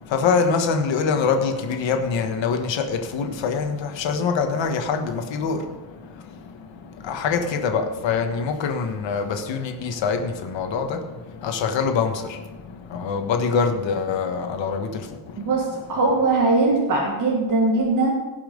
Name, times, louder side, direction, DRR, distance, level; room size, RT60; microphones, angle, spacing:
voice 1, 0.0-15.5, left 5 dB, 80° left, 1.4 m, -25 dB
voice 2, 15.4-18.1, right 3 dB, 45° right, 1.8 m, -20 dB
17.0 x 5.8 x 5.3 m
wide cardioid pair, 160°, 44 cm